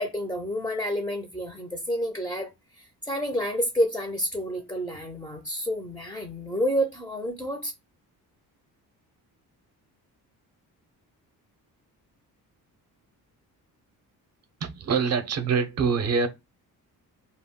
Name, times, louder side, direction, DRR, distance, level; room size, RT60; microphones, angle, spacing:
voice 1, 0.0-2.5 2.8-7.7, equal, 5° left, 0.4 m, -29 dB
voice 2, 14.6-16.3, right 5 dB, 45° right, 0.6 m, -25 dB
2.2 x 2.0 x 3.5 m
cardioid pair, 110°, 38 cm